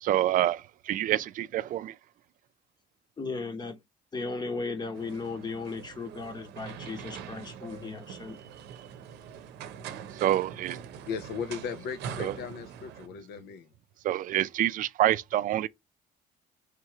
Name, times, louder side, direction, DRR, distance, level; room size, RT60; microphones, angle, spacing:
voice 1, 0.0-0.6 0.9-1.9 10.2-10.8 12.2-12.3 14.0-15.7, right 13 dB, 50° right, 0.4 m, -26 dB
voice 2, 3.2-3.8 4.1-8.4, left 4 dB, 25° left, 1.0 m, -36 dB
sound 1, 4.9-13.1, right 8 dB, 80° right, 0.7 m, -43 dB
voice 3, 11.1-13.7, left 6 dB, 70° left, 0.7 m, -37 dB
3.2 x 3.0 x 4.7 m
cardioid pair, 110°, 17 cm